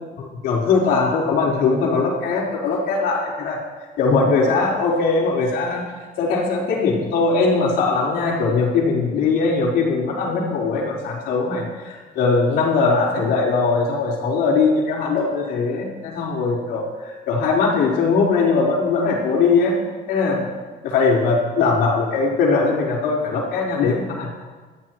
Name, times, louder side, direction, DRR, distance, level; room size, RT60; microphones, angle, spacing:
voice 1, 0.2-3.6 4.0-5.8 6.2-19.7 20.1-20.4 20.8-24.3, left 4 dB, 80° left, -4 dB, 4.4 m, -20 dB
22.0 x 14.0 x 3.1 m, 1.4 s
cardioid pair, 110°, 17 cm